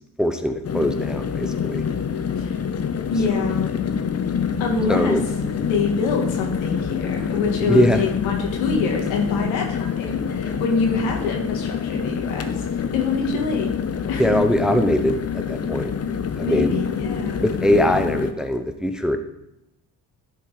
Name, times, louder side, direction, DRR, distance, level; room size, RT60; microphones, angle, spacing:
voice 1, 0.2-1.8 4.9-5.2 7.7-8.0 14.2-15.9 16.4-16.8 17.4-19.2, equal, ahead, 6 dB, 0.8 m, -21 dB
sound 1, 0.6-18.3, left 6 dB, 30° left, 0.9 m, -26 dB
voice 2, 3.1-3.9 4.6-5.2 5.5-13.7 14.1-14.2 16.4-17.5, left 4 dB, 75° left, 1 dB, 1.9 m, -26 dB
11.0 x 4.5 x 5.0 m, 0.86 s
hypercardioid pair, 50°, 47 cm